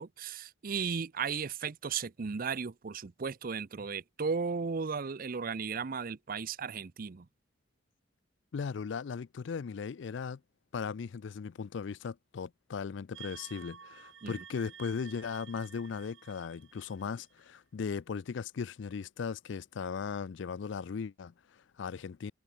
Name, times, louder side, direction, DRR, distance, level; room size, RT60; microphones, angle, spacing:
voice 1, 0.0-7.3 14.2-14.4, right 5 dB, 45° right, 0.5 m, -35 dB
voice 2, 8.5-10.4 10.7-22.3, left 6 dB, 65° left, 0.4 m, -38 dB
sound 1, 13.1-17.6, right 9 dB, 65° right, 1.9 m, -52 dB
head